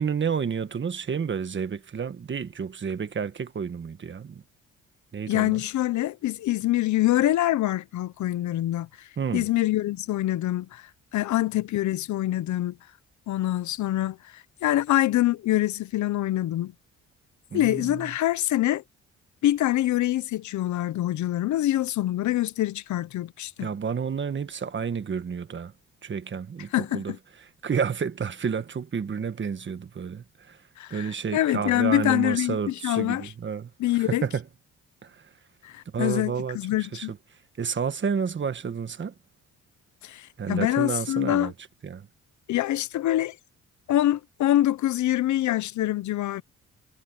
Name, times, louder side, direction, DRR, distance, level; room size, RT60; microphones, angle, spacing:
voice 1, 0.0-4.4 5.1-5.6 9.2-9.5 17.5-18.1 23.6-25.7 26.0-27.1 27.6-30.6 30.9-34.5 35.0-35.3 35.9-37.2 37.6-39.1 40.4-41.5 41.8-42.1, right 6 dB, 40° right, 1.6 m, -30 dB
voice 2, 5.3-9.1 9.3-12.8 13.3-16.7 17.5-18.8 19.4-23.7 26.7-27.2 30.8-33.3 33.8-34.2 35.6-37.1 40.0-41.5 42.5-43.4 43.9-46.4, left 14 dB, 75° left, 0.8 m, -25 dB
cardioid pair, 90°, 30 cm